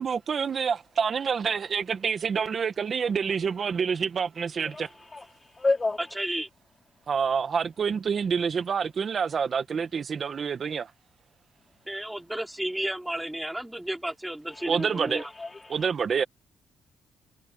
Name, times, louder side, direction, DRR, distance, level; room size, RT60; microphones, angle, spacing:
voice 1, 0.0-4.9 7.1-10.9 14.7-15.2 15.7-16.2, right 6 dB, 50° right, 1.3 m, -27 dB
voice 2, 4.7-5.3 5.5-6.0 14.5-14.9 15.2-15.8, left 3 dB, 25° left, 4.3 m, -30 dB
voice 3, 6.2-6.5 11.9-15.3, right 1 dB, 5° right, 4.7 m, -32 dB
cardioid pair, 90°, 0 cm